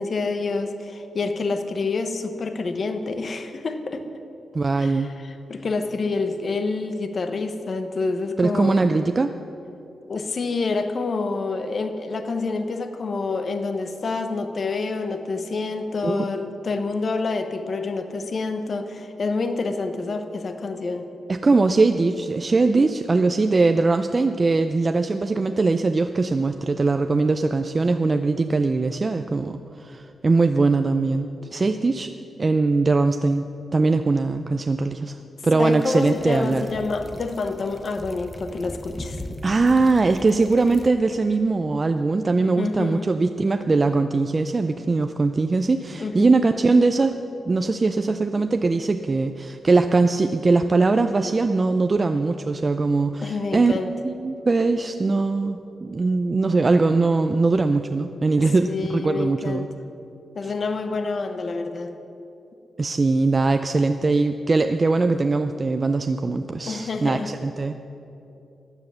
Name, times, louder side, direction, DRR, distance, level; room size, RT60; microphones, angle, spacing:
voice 1, 0.0-4.1 4.8-8.9 10.1-21.1 31.5-31.6 35.5-39.2 42.6-43.1 46.0-46.4 53.2-54.0 58.4-59.7 60.3-62.0 66.7-67.3, left 3 dB, 45° left, 8 dB, 1.0 m, -28 dB
voice 2, 4.5-5.1 8.4-9.3 16.0-16.2 21.3-32.1 32.4-33.4 33.7-35.2 35.4-36.7 39.4-47.1 47.5-53.7 54.0-59.7 60.4-60.5 62.8-67.7, right 3 dB, 30° right, 7 dB, 0.4 m, -21 dB
sound 1, 35.7-40.9, left 1 dB, 10° left, 1.0 m, -40 dB
15.0 x 10.0 x 6.9 m, 2.9 s
wide cardioid pair, 125°, 0 cm